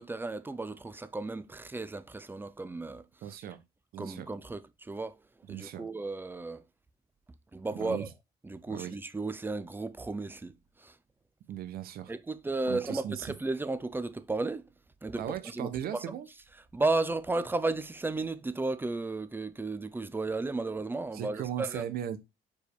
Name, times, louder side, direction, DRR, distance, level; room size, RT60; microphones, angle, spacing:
voice 1, 0.0-3.0 4.0-5.2 5.5-6.6 7.5-8.1 8.4-10.5 10.8-11.0 12.1-14.6 15.0-16.0 16.7-21.9, right 3 dB, 10° right, 0.6 m, -34 dB
voice 2, 3.2-3.6 3.9-4.3 5.5-5.8 7.7-8.1 8.7-9.0 11.5-12.1 12.7-13.3 15.2-16.3 21.1-22.2, right 10 dB, 65° right, 1.0 m, -37 dB
5.1 x 4.6 x 4.6 m
cardioid pair, 110°, 17 cm